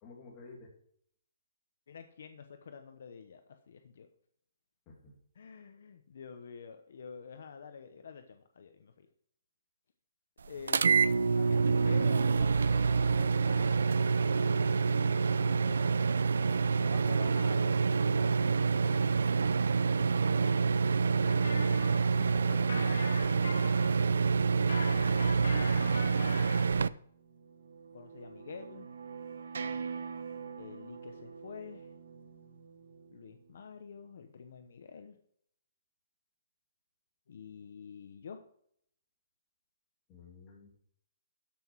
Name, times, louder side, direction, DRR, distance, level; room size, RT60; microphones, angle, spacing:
voice 1, 0.0-0.7 4.9-5.1 22.1-22.7 40.1-40.7, left 4 dB, 15° left, -1 dB, 2.4 m, -50 dB
voice 2, 1.9-4.1 5.3-9.1 10.5-14.0 14.3-15.8 16.7-19.2 19.9-21.3 27.9-28.9 30.6-31.9 33.1-35.2 37.3-38.4, left 6 dB, 55° left, 7 dB, 0.9 m, -48 dB
sound 1, 10.7-26.9, right 5 dB, 85° right, 0.4 m, -27 dB
sound 2, 21.2-26.7, left 4 dB, 75° left, 2.4 m, -42 dB
sound 3, 27.0-33.5, right 5 dB, 65° right, 1.1 m, -44 dB
13.0 x 6.1 x 4.7 m, 0.66 s
hypercardioid pair, 180°, 0 cm